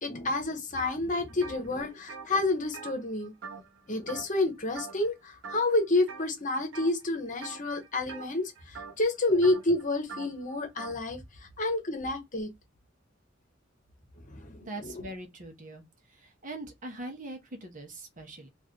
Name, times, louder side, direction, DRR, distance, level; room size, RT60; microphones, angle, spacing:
voice 1, 0.0-3.3 3.9-11.2 11.6-12.5 14.3-15.1, left 2 dB, 40° left, 1.0 m, -29 dB
sound 1, 0.8-1.0 1.3-3.8 4.1-4.4 4.7-5.1 5.4-6.2 6.7-7.0 7.4-11.0, right 5 dB, 75° right, 1.0 m, -44 dB
voice 2, 14.2-15.8 16.2-18.5, right 1 dB, 45° right, 1.0 m, -42 dB
3.1 x 2.5 x 3.7 m
head